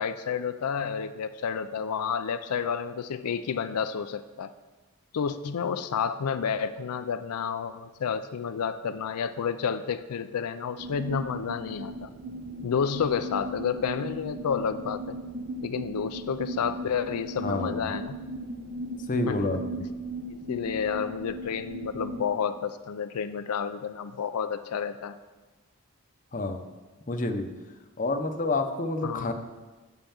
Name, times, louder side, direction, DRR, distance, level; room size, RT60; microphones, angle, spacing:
voice 1, 0.0-4.5 5.1-12.1 12.6-15.2 15.6-18.2 19.3-19.5 20.3-25.1 29.0-29.3, left 7 dB, 85° left, 10 dB, 0.4 m, -30 dB
sound 1, 10.8-22.3, right 1 dB, 45° right, 0.6 m, -37 dB
voice 2, 17.4-17.8 19.1-19.8 26.3-26.6 27.1-27.5 28.0-29.3, left 2 dB, 35° left, 6 dB, 0.7 m, -28 dB
8.0 x 5.5 x 7.1 m, 1.2 s
head